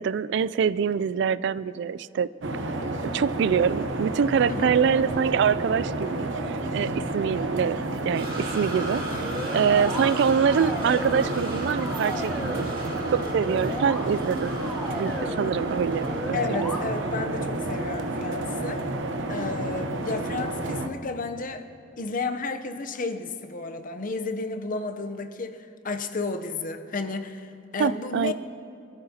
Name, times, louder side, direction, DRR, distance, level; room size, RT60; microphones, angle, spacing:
voice 1, 0.0-2.3 3.1-7.8 8.0-9.0 9.5-12.7 13.1-14.6 14.9-16.8 27.8-28.3, right 7 dB, 65° right, 18 dB, 0.3 m, -25 dB
sound 1, 2.4-20.9, right 2 dB, 85° right, 0.9 m, -30 dB
sound 2, 8.1-16.8 17.2-17.3 19.1-19.2, right 1 dB, 30° right, 3.1 m, -38 dB
sound 3, 9.0-10.1 10.5-11.4 11.7-12.7 13.2-14.0 14.4-15.4 16.0-16.8, left 1 dB, 5° left, 1.6 m, -36 dB
voice 2, 16.3-18.9 19.3-21.7 22.0-28.3, left 3 dB, 45° left, 8 dB, 0.7 m, -32 dB
24.5 x 13.5 x 2.9 m, 2.5 s
head